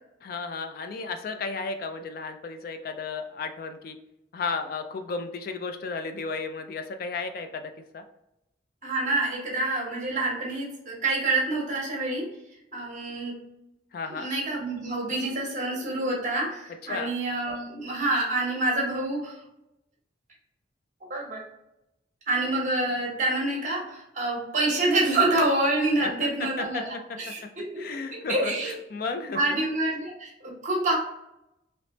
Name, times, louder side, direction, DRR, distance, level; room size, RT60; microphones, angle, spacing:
voice 1, 0.2-4.0 4.3-8.0 13.9-14.3 16.8-17.1 26.0-27.0 27.3-27.4 27.8-29.6, left 4 dB, 50° left, 7 dB, 0.3 m, -34 dB
voice 2, 8.8-12.3 12.7-13.3 14.1-19.4 21.1-21.4 22.3-28.0 28.3-28.8 29.3-30.9, right 2 dB, 40° right, -1 dB, 1.1 m, -27 dB
3.2 x 3.0 x 2.9 m, 0.87 s
head